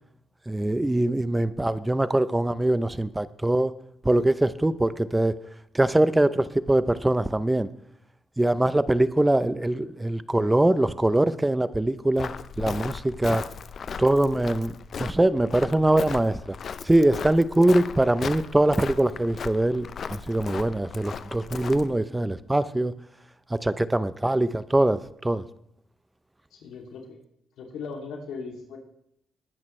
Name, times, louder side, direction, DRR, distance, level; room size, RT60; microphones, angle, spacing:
voice 1, 0.5-3.7 4.0-5.4 5.7-7.7 8.4-12.3 12.6-13.5 14.0-14.7 15.0-16.4 16.8-22.9 23.5-25.4, right 1 dB, 10° right, 14 dB, 0.6 m, -23 dB
Walk footsteps, 12.2-21.9, left 6 dB, 50° left, 0.6 m, -37 dB
voice 2, 26.5-27.2 27.6-28.8, left 4 dB, 80° left, 1 dB, 2.7 m, -38 dB
20.0 x 10.5 x 3.3 m, 0.73 s
cardioid pair, 90°, 0 cm